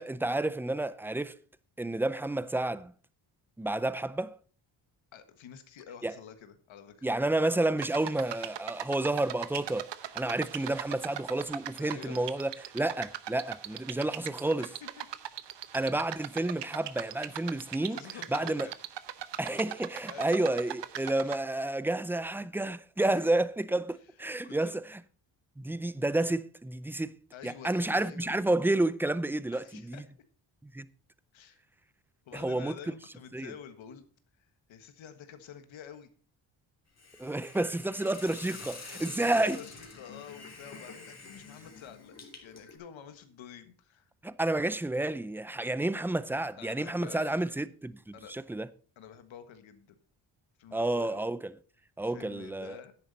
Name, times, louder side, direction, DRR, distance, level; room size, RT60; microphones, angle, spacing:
voice 1, 0.0-1.4 1.8-2.9 3.6-4.4 6.0-6.2 7.0-14.7 15.7-18.0 18.3-18.7 19.4-25.0 25.6-27.2 27.4-30.0 30.6-30.9 32.3-32.8 33.3-33.5 37.2-39.6 44.2-48.7 50.7-51.5 52.0-52.8, right 2 dB, 5° right, 0.4 m, -30 dB
voice 2, 5.1-7.1 11.8-12.2 14.6-15.1 17.5-17.6 17.9-18.7 20.1-20.5 23.0-23.3 24.4-24.7 27.3-28.4 29.5-30.0 31.3-31.6 32.2-34.0 34.4-36.1 38.9-42.2 42.4-44.1 46.6-47.5 48.1-48.3 49.0-49.9 50.6-51.2 52.0-52.9, left 8 dB, 80° left, 1.5 m, -48 dB
sound 1, 7.8-21.4, right 11 dB, 65° right, 0.9 m, -40 dB
Hiss, 37.0-42.8, left 4 dB, 35° left, 3.0 m, -47 dB
10.5 x 9.0 x 4.2 m
cardioid pair, 95°, 46 cm